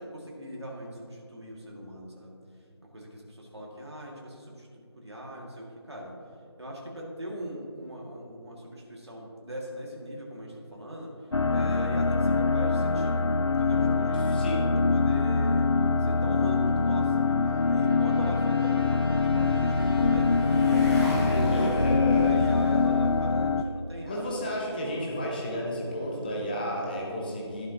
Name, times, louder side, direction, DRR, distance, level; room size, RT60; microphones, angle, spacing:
voice 1, 0.0-2.4 2.8-6.1 6.6-13.2 13.6-15.7 16.0-21.7 22.1-24.4, right 1 dB, 65° right, -2 dB, 2.2 m, -40 dB
sound 1, 11.3-23.6, left 4 dB, 75° left, 0.5 m, -24 dB
voice 2, 14.2-14.7 21.1-22.4 24.1-27.7, equal, 20° left, -3 dB, 1.1 m, -32 dB
Trumpet, 16.2-21.3, right 1 dB, 50° right, 2.1 m, -49 dB
Motorcycle, 18.8-23.5, equal, ahead, 0.7 m, -32 dB
12.0 x 11.0 x 3.0 m, 2.4 s
figure-of-eight pair, 160°, 15 cm